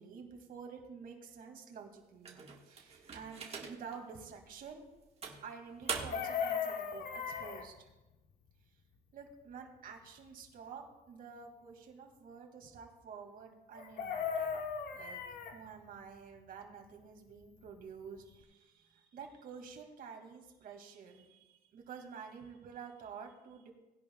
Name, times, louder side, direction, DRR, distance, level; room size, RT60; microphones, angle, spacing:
voice 1, 0.0-2.4 2.7-4.9 5.4-7.9 9.1-14.6 14.9-15.2 15.5-23.7, right 6 dB, 60° right, 3 dB, 2.4 m, -50 dB
sound 1, 2.2-4.0 4.5-4.6 5.2-6.4, right 5 dB, 40° right, 1.7 m, -42 dB
Chicken rooster, 5.9-7.7 13.7-15.6 17.8-17.9 18.2-18.4, left 6 dB, 60° left, 1.2 m, -37 dB
19.5 x 11.0 x 2.3 m, 1.1 s
cardioid pair, 110°, 17 cm